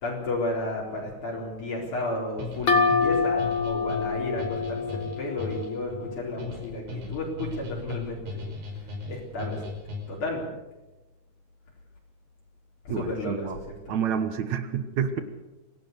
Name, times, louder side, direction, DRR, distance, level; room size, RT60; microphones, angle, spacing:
voice 1, 0.0-8.4 9.1-9.6 10.1-10.5 12.9-13.5 13.9-14.0 15.1-15.2, left 2 dB, 60° left, -3 dB, 5.5 m, -32 dB
sound 1, 2.4-10.3, left 3 dB, 85° right, 6.9 m, -37 dB
sound 2, 2.7-6.2, left 4 dB, 40° left, 2.4 m, -26 dB
voice 2, 12.9-13.6 13.9-15.2, right 7 dB, 60° right, 10 dB, 2.3 m, -28 dB
26.0 x 17.5 x 6.8 m, 1.0 s
omnidirectional pair, 3.9 m